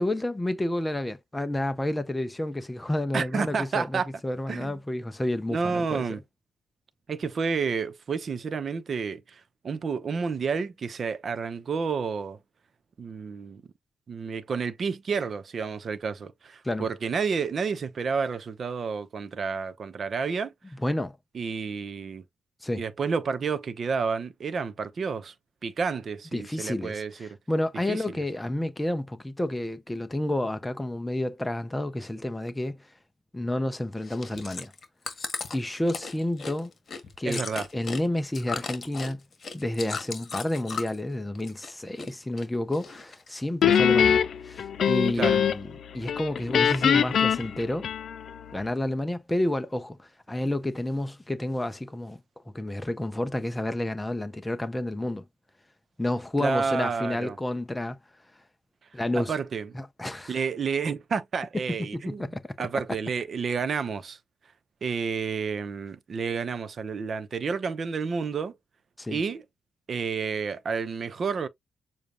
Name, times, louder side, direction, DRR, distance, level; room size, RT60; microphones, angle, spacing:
voice 1, 0.0-6.0 16.6-16.9 20.7-21.2 22.6-22.8 26.3-32.8 33.3-34.7 35.5-36.7 37.2-37.5 37.7-39.2 39.5-47.9 48.5-52.2 52.5-55.2 56.0-58.0 58.9-59.3 59.7-60.4 61.7-62.4 69.0-69.2, left 1 dB, 10° left, 0.6 m, -30 dB
voice 2, 3.1-4.1 4.5-4.7 5.5-6.2 7.1-9.2 9.6-12.4 13.0-13.6 14.1-20.5 21.3-22.2 22.8-25.3 25.6-27.4 27.9-28.0 37.2-37.7 45.2-45.4 56.4-57.4 59.2-59.7 60.3-62.3 62.6-64.2 64.8-68.5 69.1-69.4 69.9-71.5, right 5 dB, 45° right, 0.8 m, -30 dB
Chewing mastication, 34.0-41.1 41.4-42.1 42.4-43.3 43.8-43.9, left 5 dB, 45° left, 1.7 m, -36 dB
Guitar, 43.6-45.8 46.1-48.4, left 8 dB, 65° left, 0.7 m, -23 dB
6.9 x 2.4 x 3.0 m
cardioid pair, 120°, 0 cm